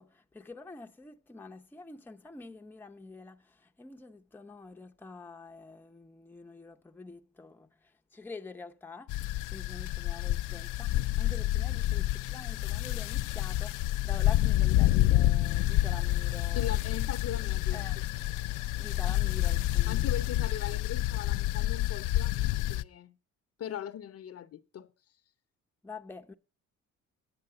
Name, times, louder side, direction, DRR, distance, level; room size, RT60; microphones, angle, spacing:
voice 1, 0.0-16.7 17.7-18.0 18.8-20.0 25.8-26.3, left 3 dB, 5° left, 0.7 m, -47 dB
sound 1, 9.1-22.8, left 14 dB, 85° left, 0.5 m, -28 dB
voice 2, 16.5-18.1 19.9-23.2 23.6-24.9, left 9 dB, 55° left, 0.7 m, -40 dB
9.7 x 7.6 x 6.6 m
cardioid pair, 100°, 30 cm